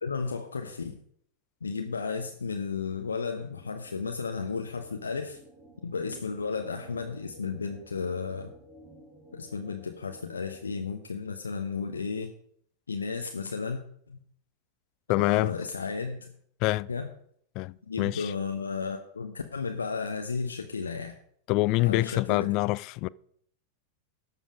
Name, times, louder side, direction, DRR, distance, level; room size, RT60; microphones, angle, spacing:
voice 1, 0.0-1.0 1.6-5.4 5.8-8.5 9.3-12.3 12.9-13.8 14.1-14.2 15.2-16.3 16.9-17.1 17.9-21.2 21.8-22.5, left 5 dB, 75° left, 0.9 m, -33 dB
sound 1, 3.5-10.8, right 1 dB, 5° right, 3.6 m, -54 dB
voice 2, 15.1-15.5 16.6-16.9 17.6-18.3 21.5-23.1, left 20 dB, 40° left, 0.3 m, -26 dB
12.5 x 7.1 x 5.0 m
figure-of-eight pair, 90°, 0 cm